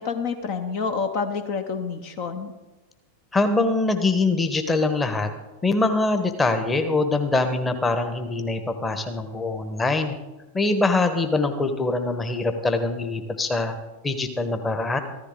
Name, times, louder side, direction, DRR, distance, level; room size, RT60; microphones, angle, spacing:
voice 1, 0.0-2.5, left 5 dB, 45° left, 6 dB, 1.1 m, -28 dB
voice 2, 3.3-5.3 5.6-10.2 10.5-13.7 14.0-15.0, left 3 dB, 15° left, 7 dB, 1.2 m, -23 dB
14.5 x 13.5 x 3.8 m, 1.1 s
figure-of-eight pair, 90°, 0 cm